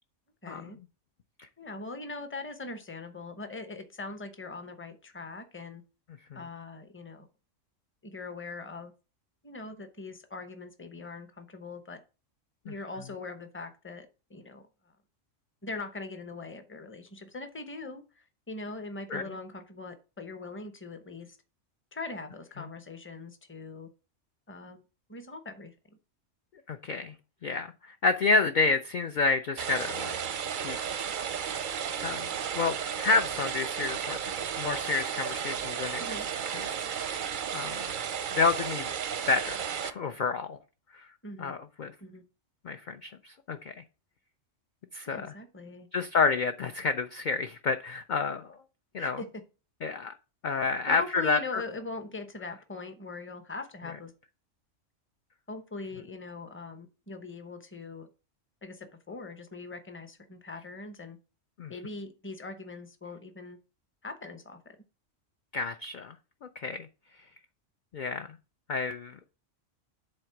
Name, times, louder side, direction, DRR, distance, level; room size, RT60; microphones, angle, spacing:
voice 1, 0.4-0.8 1.6-5.8 6.3-7.3 8.0-8.9 9.4-12.0 12.7-14.6 15.6-21.4 21.9-23.9 24.5-24.8 25.1-26.0 36.0-36.3 41.2-41.5 42.0-42.2 45.1-45.9 49.0-49.3 50.9-54.1 55.5-58.1 58.6-61.2 61.7-63.6 64.0-64.6, left 3 dB, 10° left, 0.7 m, -41 dB
voice 2, 26.7-27.1 27.4-30.1 30.5-31.2 32.0-32.3 32.5-36.2 36.5-37.1 37.5-37.8 38.3-38.9 39.3-40.6 40.9-41.1 41.4-41.9 42.6-43.7 44.9-45.3 45.9-48.6 48.9-49.2 49.8-50.1 50.4-51.6 61.6-61.7 65.5-66.2 66.6-66.9 67.9-68.3 68.7-69.2, left 4 dB, 55° left, 0.5 m, -29 dB
sound 1, 29.6-39.9, right 8 dB, 55° right, 0.6 m, -33 dB
7.7 x 3.9 x 5.8 m
omnidirectional pair, 1.3 m